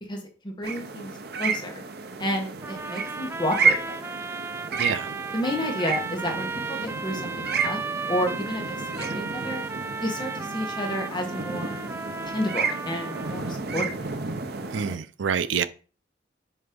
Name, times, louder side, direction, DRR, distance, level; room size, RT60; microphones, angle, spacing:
voice 1, 0.1-1.1 1.4-1.8 2.2-4.0 5.3-7.8 8.1-9.6 10.0-11.8 12.2-13.9, left 1 dB, 25° left, 1.7 m, -31 dB
sound 1, 0.6-15.0, right 5 dB, 60° right, 0.8 m, -31 dB
sound 2, 2.6-13.6, right 4 dB, 15° right, 0.3 m, -35 dB
voice 2, 4.8-5.1 14.7-15.7, right 7 dB, 80° right, 0.5 m, -27 dB
7.4 x 3.4 x 5.3 m
head